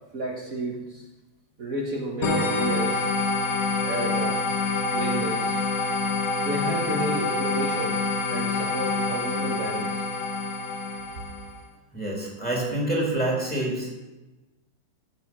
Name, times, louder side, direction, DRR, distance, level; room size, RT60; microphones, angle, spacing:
voice 1, 0.1-1.0 1.6-3.1 3.8-4.4 4.9-5.6 6.4-8.0 8.3-9.9, right 2 dB, 50° right, -2 dB, 1.6 m, -31 dB
sound 1, 2.2-11.6, left 3 dB, 50° left, 1.5 m, -26 dB
voice 2, 11.9-13.9, right 1 dB, 5° left, -3 dB, 2.9 m, -27 dB
15.0 x 5.2 x 6.1 m, 1.1 s
omnidirectional pair, 2.1 m